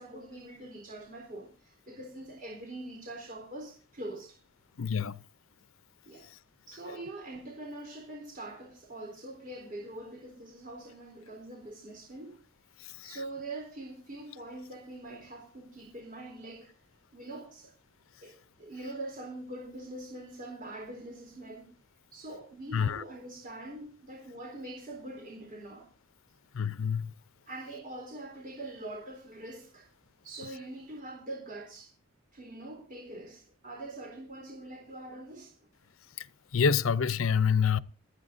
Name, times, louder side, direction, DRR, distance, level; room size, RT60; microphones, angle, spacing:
voice 1, 0.0-4.4 6.1-6.3 6.7-12.4 13.0-16.7 17.1-17.7 18.2-21.7 22.1-25.9 27.5-29.9 30.2-31.9 32.3-35.5, right 1 dB, 45° right, 3.8 m, -43 dB
voice 2, 4.8-5.2 13.0-13.2 22.7-23.0 26.5-27.1 36.2-36.3 36.5-37.8, left 6 dB, 90° left, 0.6 m, -27 dB
28.0 x 9.6 x 2.6 m
head